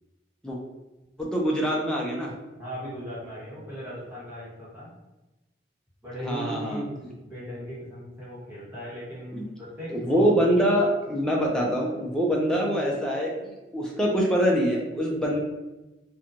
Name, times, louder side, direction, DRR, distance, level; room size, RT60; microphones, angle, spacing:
voice 1, 1.2-2.3 6.3-6.8 9.3-9.4 9.9-15.4, equal, 5° left, -3 dB, 0.4 m, -24 dB
voice 2, 2.5-4.9 6.0-10.3, equal, 15° right, -9 dB, 1.1 m, -37 dB
2.9 x 2.2 x 2.5 m, 1.0 s
head